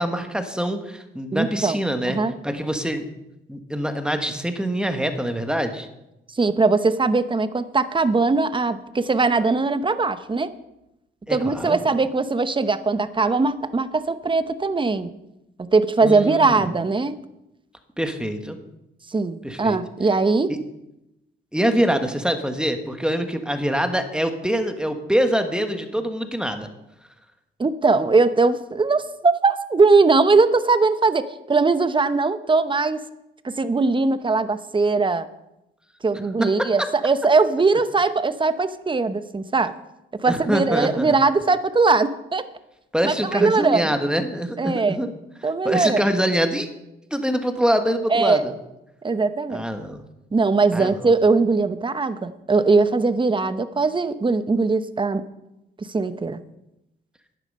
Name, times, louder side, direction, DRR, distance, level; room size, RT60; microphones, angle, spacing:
voice 1, 0.0-2.2 2.4-3.0 3.5-5.9 11.3-11.8 16.0-16.7 18.0-18.6 19.4-19.8 21.5-26.7 36.4-36.7 40.3-41.2 42.9-45.1 45.4-46.7 47.1-48.5 49.5-50.0 50.7-51.1, equal, 5° right, 7 dB, 1.4 m, -24 dB
voice 2, 1.3-1.8 2.1-2.3 6.3-10.5 11.3-15.1 15.7-17.1 19.1-20.5 27.6-33.0 33.4-35.3 36.0-39.7 40.2-42.4 43.0-43.9 44.6-45.1 45.4-46.0 48.1-48.4 49.0-49.6 50.3-55.2 55.8-56.4, right 3 dB, 25° right, 12 dB, 0.8 m, -20 dB
11.0 x 10.0 x 5.4 m, 0.89 s
cardioid pair, 85°, 21 cm